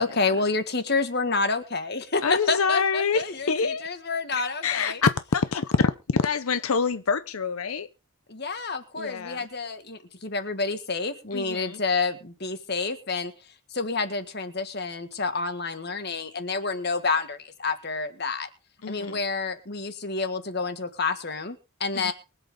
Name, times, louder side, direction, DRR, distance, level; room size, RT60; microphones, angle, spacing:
voice 1, 0.0-5.0 8.3-13.3 13.7-18.5 18.9-22.1, left 4 dB, 50° left, 1.8 m, -29 dB
voice 2, 2.2-3.9 4.3-7.9 9.0-9.4 11.3-11.8 18.8-19.2 21.9-22.1, left 5 dB, 85° left, 0.7 m, -26 dB
23.5 x 8.1 x 3.7 m
head